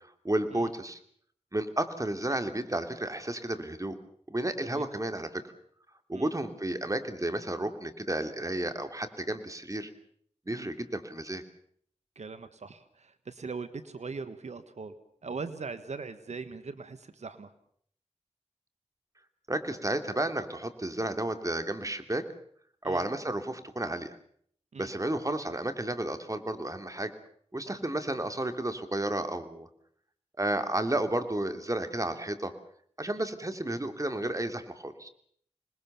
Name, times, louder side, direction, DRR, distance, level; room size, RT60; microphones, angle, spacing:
voice 1, 0.2-1.0 1.5-4.0 4.3-5.4 6.1-9.9 10.5-11.4 19.5-22.2 22.8-24.2 24.8-27.1 27.5-29.7 30.4-32.5 33.0-35.1, right 1 dB, 30° right, 8 dB, 3.1 m, -32 dB
voice 2, 12.1-14.9 15.2-17.5 22.8-23.0 24.7-24.9 27.7-27.8, right 4 dB, 90° right, 11 dB, 1.4 m, -40 dB
27.0 x 20.5 x 7.0 m, 0.62 s
cardioid pair, 40°, 11 cm